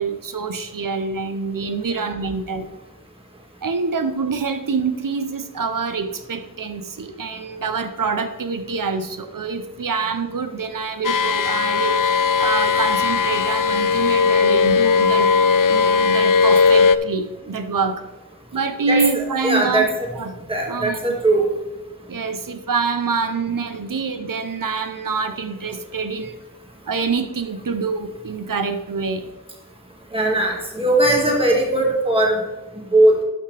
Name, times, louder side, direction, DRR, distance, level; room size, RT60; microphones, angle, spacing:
voice 1, 0.0-2.8 3.6-12.1 12.4-15.3 15.7-18.0 18.5-19.9 20.2-20.4 20.7-21.2 22.1-26.4 26.9-29.3, right 4 dB, 75° right, 9 dB, 0.7 m, -26 dB
sound 1, 11.0-17.0, left 5 dB, 70° left, 0.5 m, -17 dB
voice 2, 18.9-19.9 20.5-21.4 30.1-32.4 32.9-33.1, right 1 dB, 15° right, -1 dB, 1.8 m, -19 dB
12.5 x 5.9 x 3.3 m, 1.1 s
wide cardioid pair, 45°, 33 cm